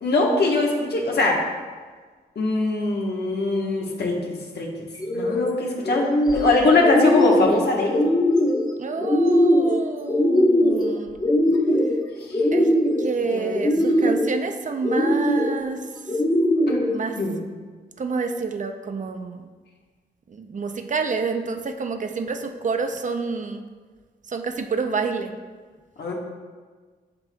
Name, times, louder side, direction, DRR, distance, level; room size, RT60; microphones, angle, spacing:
voice 1, 0.0-1.4 2.4-4.7 5.1-8.0 12.3-12.4 13.3-13.6 16.7-16.8 17.2-17.4 26.0-26.1, left 2 dB, 75° left, -1 dB, 1.2 m, -22 dB
sound 1, 4.9-5.4 5.8-6.5 6.8-7.5 7.9-8.6 9.0-9.7 10.1-10.9 11.2-11.9 12.3-13.1 13.5-14.3 14.8-15.5 16.1-16.9, left 1 dB, 25° left, 0.9 m, -20 dB
voice 2, 8.8-11.2 12.5-12.7 13.0-16.2 16.9-17.2 18.0-19.5 20.3-23.6 24.3-25.3, right 4 dB, 50° right, 6 dB, 0.5 m, -28 dB
7.6 x 5.9 x 2.2 m, 1.5 s
wide cardioid pair, 90°, 17 cm